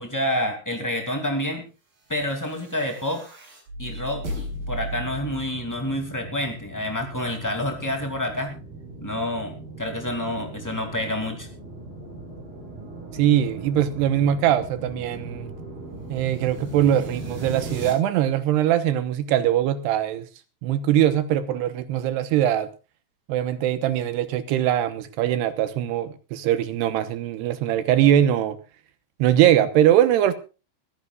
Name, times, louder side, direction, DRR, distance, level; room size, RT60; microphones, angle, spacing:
voice 1, 0.0-1.6 2.1-3.2 3.8-8.6 9.0-11.5, left 1 dB, 15° left, 0.5 m, -28 dB
sound 1, 2.2-17.9, right 1 dB, 45° right, 8.2 m, -38 dB
voice 2, 13.1-15.5 16.1-20.3 20.6-22.7 23.3-28.6 29.2-30.3, right 11 dB, 75° right, 2.7 m, -21 dB
22.5 x 15.0 x 2.4 m
omnidirectional pair, 5.6 m